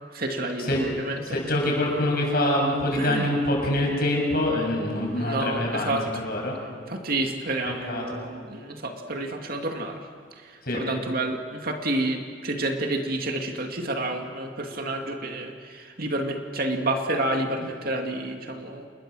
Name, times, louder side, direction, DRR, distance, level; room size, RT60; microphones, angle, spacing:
voice 1, 0.1-1.4 2.9-3.3 5.2-6.1 6.9-10.0 10.4-18.9, right 2 dB, 55° right, 3 dB, 2.5 m, -29 dB
voice 2, 1.2-6.0 6.2-6.5 7.9-8.0 10.6-10.8, left 1 dB, 55° left, 0 dB, 6.9 m, -25 dB
28.0 x 21.0 x 6.4 m, 2.1 s
head